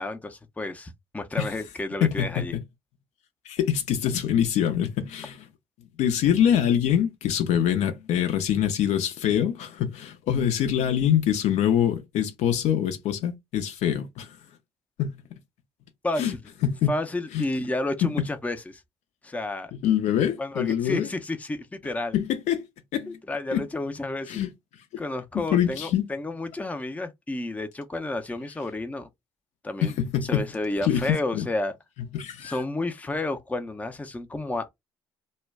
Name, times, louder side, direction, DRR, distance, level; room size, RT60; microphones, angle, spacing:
voice 1, 0.0-2.6 16.0-16.4 16.9-18.8 19.2-19.7 20.4-22.2 23.1-24.4 25.0-29.1 29.6-29.9 30.2-31.7 32.4-34.7, left 2 dB, 10° left, 0.5 m, -31 dB
voice 2, 2.0-2.6 3.5-5.4 6.0-14.3 15.0-15.1 16.2-16.3 16.6-16.9 17.3-17.4 18.0-18.3 19.7-21.1 22.1-22.6 22.9-23.2 23.5-23.6 24.3-24.5 25.3-26.1 29.8-30.5 30.8-31.5 32.1-32.6, left 9 dB, 60° left, 0.6 m, -24 dB
2.2 x 2.1 x 3.4 m
hypercardioid pair, 55°, 13 cm